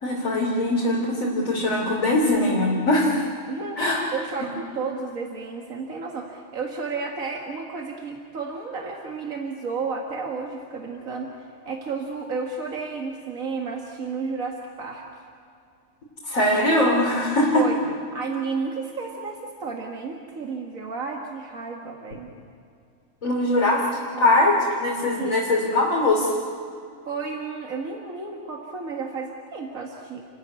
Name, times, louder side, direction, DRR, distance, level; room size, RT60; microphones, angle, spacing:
voice 1, 0.0-3.3 3.8-4.0 16.2-17.6 23.2-23.8 24.2-26.3, left 1 dB, 80° left, -4 dB, 3.6 m, -21 dB
voice 2, 3.5-3.8 4.1-15.0 17.5-17.8 18.1-22.3 24.1-24.3 25.2-25.4 27.1-30.2, right 4 dB, 85° right, 1 dB, 2.2 m, -32 dB
29.5 x 14.5 x 9.6 m, 2.4 s
omnidirectional pair, 1.4 m